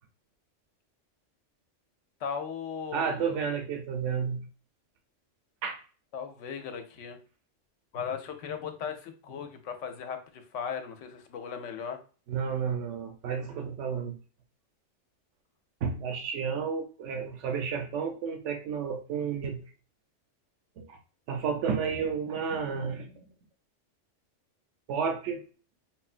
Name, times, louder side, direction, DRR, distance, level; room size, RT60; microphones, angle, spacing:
voice 1, 2.2-3.4 6.1-7.2 7.9-12.0, left 7 dB, 80° left, 6 dB, 1.0 m, -37 dB
voice 2, 2.9-4.5 5.6-5.8 12.3-14.2 15.8-19.6 20.8-21.0 21.3-23.3 24.9-25.4, right 6 dB, 75° right, 4 dB, 1.0 m, -31 dB
5.6 x 2.2 x 2.4 m, 0.38 s
omnidirectional pair, 1.3 m